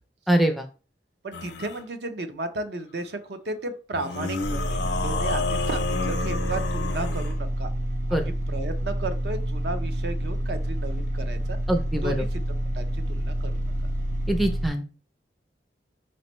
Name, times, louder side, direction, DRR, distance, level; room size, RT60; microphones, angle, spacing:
voice 1, 0.3-0.7 8.1-8.3 11.7-12.2 14.3-14.8, right 1 dB, ahead, 4 dB, 0.4 m, -23 dB
voice 2, 1.2-7.7 8.1-11.6 12.0-12.4 12.7-13.6, right 2 dB, 65° right, 8 dB, 0.6 m, -34 dB
sound 1, 1.3-1.8 3.9-7.4, left 4 dB, 65° left, 0.6 m, -30 dB
sound 2, 4.4-14.7, right 1 dB, 45° right, 1.0 m, -28 dB
5.1 x 3.1 x 3.0 m, 0.35 s
head